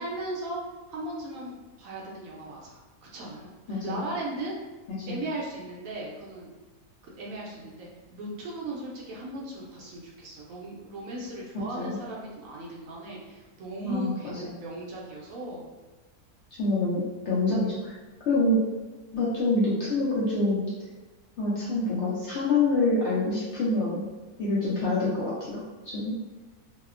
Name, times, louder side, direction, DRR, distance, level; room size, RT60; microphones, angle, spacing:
voice 1, 0.0-4.5 5.1-6.5 7.0-15.6, right 1 dB, 70° right, -3 dB, 0.9 m, -37 dB
voice 2, 3.7-4.0 5.0-5.2 11.7-12.0 13.8-14.1 14.4-14.5 16.6-18.0 18.3-18.6 19.1-20.6 21.4-24.0 24.4-26.1, left 2 dB, 65° left, -7 dB, 0.7 m, -26 dB
2.7 x 2.0 x 2.4 m, 1.2 s
omnidirectional pair, 1.6 m